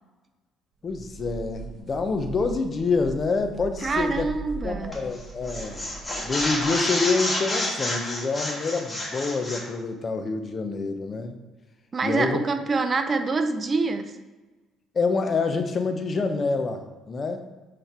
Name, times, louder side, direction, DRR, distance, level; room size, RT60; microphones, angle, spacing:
voice 1, 0.8-4.3 4.6-5.8 6.2-11.4 12.0-12.4 14.9-17.4, left 4 dB, 35° left, 6 dB, 0.7 m, -27 dB
sound 1, 0.9-6.9, right 5 dB, 50° right, 1.2 m, -40 dB
voice 2, 3.8-5.0 11.9-14.1, right 3 dB, 35° right, 8 dB, 0.5 m, -26 dB
sound 2, 4.9-5.2 5.5-9.7, left 1 dB, 15° left, 1.7 m, -29 dB
8.0 x 3.2 x 4.3 m, 1.2 s
cardioid pair, 95°, 0 cm